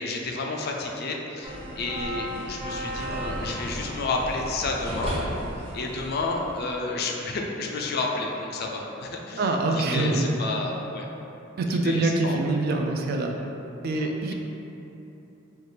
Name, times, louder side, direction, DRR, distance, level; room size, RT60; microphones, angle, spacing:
voice 1, 0.0-5.2 5.7-11.1 11.6-12.6 13.4-13.5 13.9-14.3, left 3 dB, 50° left, 1 dB, 0.4 m, -31 dB
sound 1, 1.4-6.8, equal, 30° right, 0.8 m, -34 dB
voice 2, 9.4-10.3 11.6-13.3 13.8-14.3, right 2 dB, 50° right, 3 dB, 0.3 m, -25 dB
4.4 x 2.4 x 3.2 m, 2.9 s
head